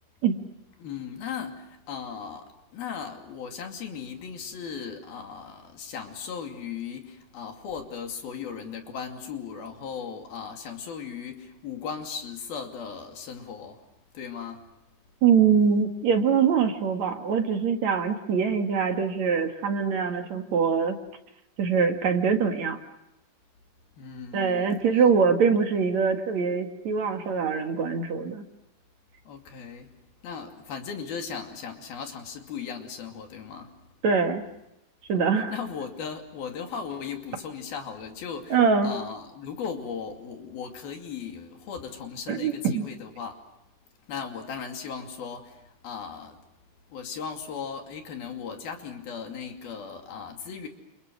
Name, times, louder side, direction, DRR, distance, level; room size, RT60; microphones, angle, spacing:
voice 1, 0.8-13.8 14.1-14.7 24.0-24.7 25.0-25.1 29.3-29.9 30.2-33.8 35.5-43.4 44.1-46.4 46.9-50.7, left 6 dB, 75° left, 4 dB, 4.5 m, -37 dB
voice 2, 15.2-21.0 21.6-22.8 24.3-28.4 34.0-34.4 35.1-35.5 38.5-38.9 42.3-42.9, right 6 dB, 55° right, 5 dB, 2.9 m, -23 dB
29.5 x 28.5 x 6.2 m, 0.86 s
omnidirectional pair, 4.4 m